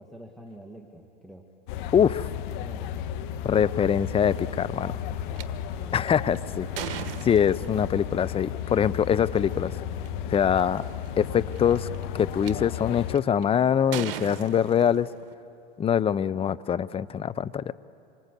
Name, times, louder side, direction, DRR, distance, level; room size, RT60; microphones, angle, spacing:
voice 1, 0.0-1.5 2.6-2.9 5.8-6.0 11.1-11.5, right 1 dB, ahead, 0 dB, 1.9 m, -46 dB
sound 1, 1.7-13.2, left 9 dB, 60° left, 1.4 m, -34 dB
voice 2, 1.9-2.3 3.4-4.9 5.9-9.7 10.3-10.8 11.2-11.9 12.1-15.1 15.8-17.7, left 8 dB, 20° left, 15 dB, 0.6 m, -24 dB
sound 2, 5.4-5.5 6.1-7.9 9.2-9.4 10.0-10.1 10.3-10.8 11.5-12.5 13.1-13.4 13.9-15.3, right 10 dB, 70° right, 1.4 m, -37 dB
27.0 x 24.5 x 8.3 m, 2.6 s
hypercardioid pair, 100°, 29 cm